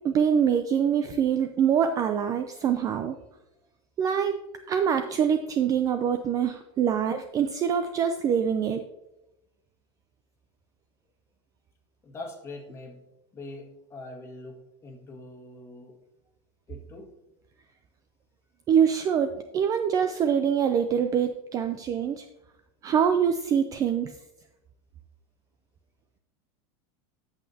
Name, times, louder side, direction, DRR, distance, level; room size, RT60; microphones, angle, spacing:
voice 1, 0.0-3.2 4.0-4.4 4.7-8.8 18.7-22.3 22.8-24.1, right 8 dB, 25° right, 8 dB, 0.3 m, -24 dB
voice 2, 12.0-13.0 13.3-16.0 16.7-17.1, left 2 dB, 15° left, 0 dB, 1.7 m, -43 dB
13.5 x 5.7 x 2.7 m, 0.92 s
supercardioid pair, 150°, 15 cm